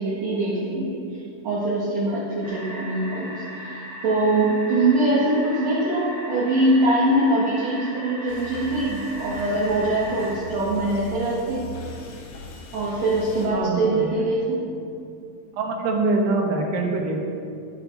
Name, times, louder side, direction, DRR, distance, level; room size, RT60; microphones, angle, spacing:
voice 1, 0.0-11.7 12.7-14.6, right 1 dB, 50° right, -6 dB, 2.5 m, -23 dB
sound 1, 2.4-10.4, right 1 dB, 10° right, 3.2 m, -38 dB
sound 2, 8.3-13.5, left 1 dB, 85° left, 3.8 m, -40 dB
voice 2, 13.5-14.1 15.6-17.2, right 3 dB, 75° right, 0 dB, 3.4 m, -24 dB
12.5 x 9.0 x 6.2 m, 2.6 s
omnidirectional pair, 4.7 m